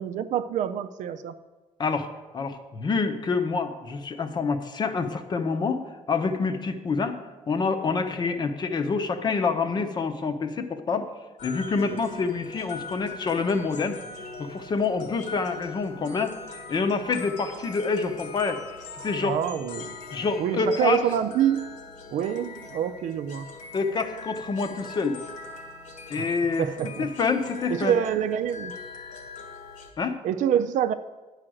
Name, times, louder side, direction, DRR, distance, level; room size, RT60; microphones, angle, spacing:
voice 1, 0.0-1.3 11.9-12.1 19.2-20.0 20.4-21.7 22.1-23.5 26.2-26.3 26.6-27.1 27.7-28.7 30.2-30.9, right 9 dB, 75° right, 10 dB, 0.5 m, -26 dB
voice 2, 2.3-5.8 6.1-7.2 7.5-11.1 11.4-14.0 14.4-18.6 19.0-19.4 20.1-21.0 23.7-25.2 26.1-26.6 27.0-28.0 30.0-30.2, left 4 dB, 35° left, 8 dB, 0.8 m, -27 dB
sound 1, 11.4-29.9, left 3 dB, 80° left, 1.6 m, -41 dB
10.0 x 4.9 x 7.7 m, 1.2 s
cardioid pair, 160°, 13 cm